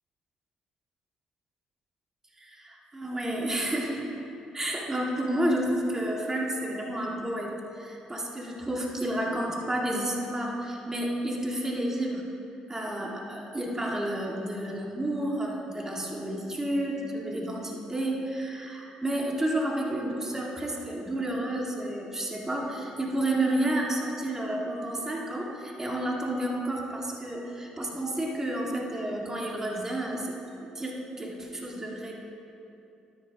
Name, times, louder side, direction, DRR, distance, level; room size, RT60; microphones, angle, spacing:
voice 1, 2.4-4.0 4.5-12.2 12.7-32.2, right 1 dB, 20° right, -1 dB, 1.8 m, -31 dB
12.5 x 10.5 x 2.8 m, 2.8 s
supercardioid pair, 60°, 3 cm